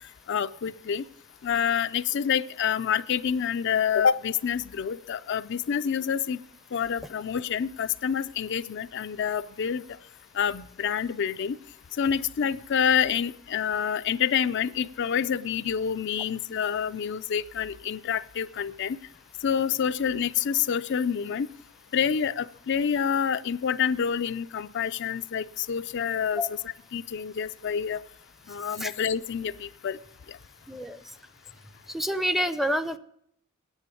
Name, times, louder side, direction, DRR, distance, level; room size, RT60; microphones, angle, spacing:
voice 1, 0.3-1.0 1.4-6.4 6.7-9.8 10.4-11.6 12.0-19.0 19.4-21.5 21.9-26.4 26.9-28.0 28.5-30.0, left 7 dB, 55° left, 11 dB, 0.4 m, -27 dB
voice 2, 30.7-31.0 31.9-33.0, equal, ahead, 11 dB, 0.6 m, -28 dB
9.7 x 8.4 x 8.3 m, 0.71 s
head